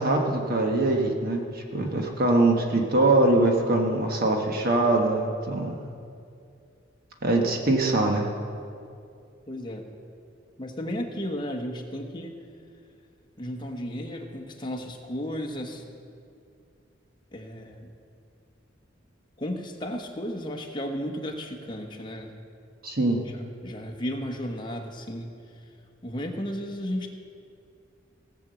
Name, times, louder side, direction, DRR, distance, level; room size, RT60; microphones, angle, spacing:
voice 1, 0.0-5.8 7.2-8.3 22.8-23.2, right 2 dB, 50° right, 2 dB, 1.3 m, -23 dB
voice 2, 9.5-9.9 10.6-12.4 13.4-15.8 17.3-17.9 19.4-22.3 23.2-23.3 23.6-25.3 26.0-27.1, equal, 25° left, 2 dB, 1.2 m, -34 dB
17.5 x 6.1 x 7.7 m, 2.4 s
head